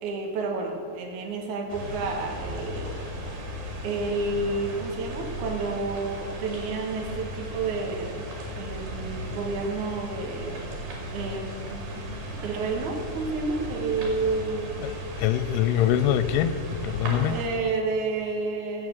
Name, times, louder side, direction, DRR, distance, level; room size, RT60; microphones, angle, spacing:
voice 1, 0.0-3.1 3.8-8.3 8.6-10.6 11.1-14.8 17.1-18.9, right 3 dB, 65° right, 2 dB, 2.7 m, -30 dB
sound 1, 1.7-17.5, equal, 80° right, 4.1 m, -36 dB
voice 2, 14.8-16.6 16.8-17.4, left 11 dB, 85° left, 13 dB, 2.2 m, -24 dB
15.5 x 6.8 x 7.4 m, 2.7 s
omnidirectional pair, 3.9 m